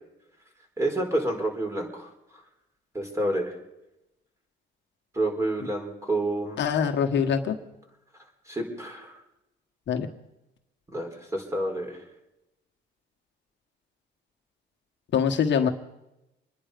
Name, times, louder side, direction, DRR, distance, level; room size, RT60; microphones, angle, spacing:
voice 1, 0.8-2.1 2.9-3.5 5.1-6.6 8.5-9.2 10.9-12.0, right 1 dB, 15° right, 2 dB, 4.5 m, -29 dB
voice 2, 6.6-7.6 9.9-10.1 15.1-15.7, left 7 dB, 65° left, 4 dB, 1.4 m, -24 dB
26.0 x 10.5 x 5.2 m, 0.91 s
cardioid pair, 90°, 20 cm